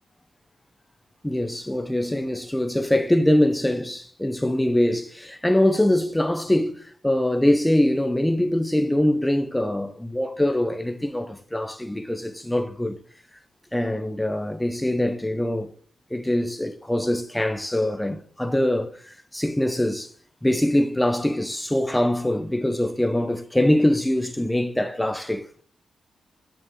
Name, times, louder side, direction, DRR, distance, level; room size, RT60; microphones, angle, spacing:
voice 1, 1.2-13.0 13.7-15.7 16.1-20.1 20.4-25.5, left 1 dB, 10° left, 0.6 m, -23 dB
9.3 x 3.6 x 3.1 m
cardioid pair, 75°, 0 cm